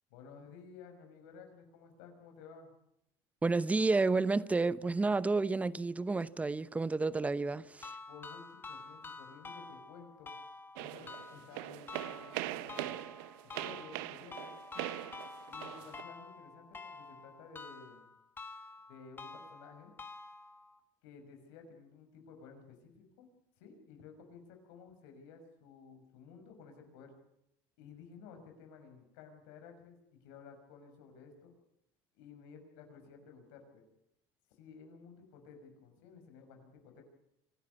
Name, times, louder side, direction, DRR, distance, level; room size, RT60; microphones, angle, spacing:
voice 1, 0.1-2.7 8.1-10.3 10.8-13.1 13.4-14.5 15.5-18.0 18.9-19.9 21.0-23.3 23.6-27.1 27.8-30.0 30.2-31.5 32.1-33.8 34.6-37.0, left 5 dB, 80° left, 6.0 m, -54 dB
voice 2, 3.4-7.9, right 3 dB, 15° right, 0.8 m, -30 dB
sound 1, 7.8-20.8, left 3 dB, 20° left, 1.8 m, -49 dB
sound 2, 10.8-16.0, right 16 dB, 80° right, 1.0 m, -42 dB
25.5 x 12.5 x 9.4 m
supercardioid pair, 120°, 10 cm